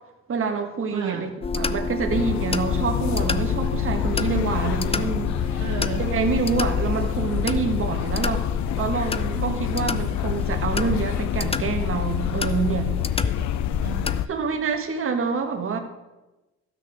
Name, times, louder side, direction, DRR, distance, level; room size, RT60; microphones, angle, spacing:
voice 1, 0.3-5.6 6.0-8.5 8.7-12.9 14.3-15.8, right 5 dB, 45° right, 5 dB, 1.5 m, -27 dB
voice 2, 0.9-1.3 5.6-6.1 9.3-9.7 13.4-13.5 13.8-14.3, right 7 dB, 65° right, 2 dB, 1.2 m, -33 dB
sound 1, 1.4-14.2, left 4 dB, 20° left, 0.5 m, -29 dB
sound 2, 2.1-14.3, left 13 dB, 70° left, 0.5 m, -27 dB
12.5 x 6.2 x 6.2 m, 1.1 s
cardioid pair, 90°, 30 cm